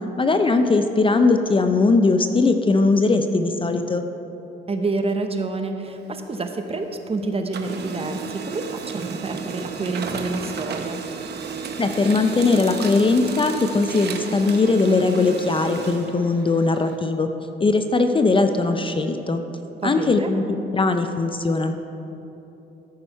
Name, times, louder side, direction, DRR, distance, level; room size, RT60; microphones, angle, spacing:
voice 1, 0.2-4.0 11.8-17.3 17.6-19.4 19.8-20.4 20.7-21.7, left 3 dB, 25° left, 7 dB, 0.5 m, -20 dB
voice 2, 4.7-11.0 19.8-20.3, right 3 dB, 30° right, 6 dB, 0.8 m, -28 dB
Printer, 5.8-7.1 7.4-17.0, right 5 dB, 55° right, 0.8 m, -33 dB
14.0 x 6.2 x 4.6 m, 3.0 s
cardioid pair, 90°, 20 cm